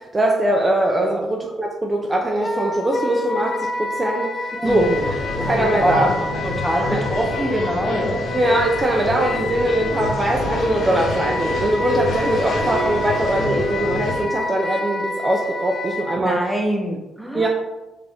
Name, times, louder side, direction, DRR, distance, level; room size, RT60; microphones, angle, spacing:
voice 1, 0.1-4.9 5.4-6.1 6.9-7.0 8.3-16.4 17.3-17.5, right 1 dB, 25° right, 0 dB, 0.5 m, -21 dB
Wind instrument woodwind instrument, 2.4-16.2, left 3 dB, 25° left, 0.4 m, -29 dB
sound 1, 4.6-14.2, left 2 dB, 65° left, 1.0 m, -27 dB
voice 2, 4.6-5.1 5.3-6.1 6.4-8.2 16.2-17.5, equal, ahead, 1 dB, 0.8 m, -24 dB
4.9 x 2.6 x 3.5 m, 1.1 s
cardioid pair, 90°, 0 cm